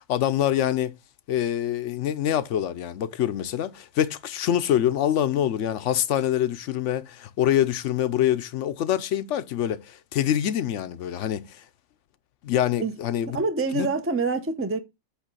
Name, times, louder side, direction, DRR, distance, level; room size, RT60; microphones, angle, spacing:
voice 1, 0.1-0.9 1.3-11.6 12.4-13.4 13.7-13.9, left 11 dB, 80° left, 1.0 m, -25 dB
voice 2, 13.3-14.8, right 3 dB, 15° right, 0.5 m, -26 dB
8.1 x 3.3 x 6.1 m
omnidirectional pair, 1.2 m